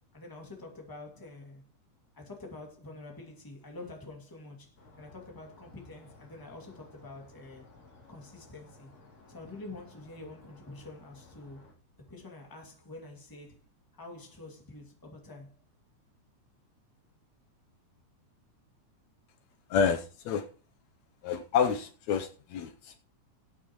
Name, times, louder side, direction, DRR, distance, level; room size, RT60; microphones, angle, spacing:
voice 1, 0.1-1.6 2.1-7.7 8.1-8.9 9.3-11.7 12.0-13.6 13.9-15.5, left 2 dB, 10° left, 1.8 m, -47 dB
sound 1, 4.8-11.7, left 3 dB, 60° left, 4.2 m, -57 dB
voice 2, 19.7-20.4 21.2-23.0, left 6 dB, 75° left, 2.0 m, -29 dB
19.5 x 8.8 x 3.0 m
omnidirectional pair, 3.4 m